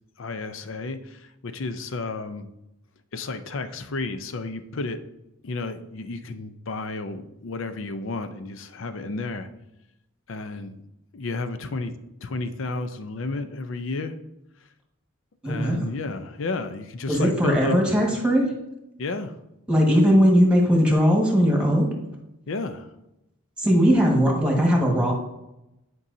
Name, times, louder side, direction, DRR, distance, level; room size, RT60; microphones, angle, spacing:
voice 1, 0.2-2.5 3.1-5.0 5.4-9.5 10.3-10.8 11.1-11.9 12.2-14.1 15.4-17.8 19.0-19.3 22.5-22.9, left 3 dB, 65° left, 10 dB, 0.6 m, -32 dB
voice 2, 15.4-15.9 17.1-18.4 19.7-21.9 23.6-25.1, equal, 5° right, -1 dB, 1.6 m, -19 dB
10.0 x 5.4 x 2.7 m, 0.89 s
head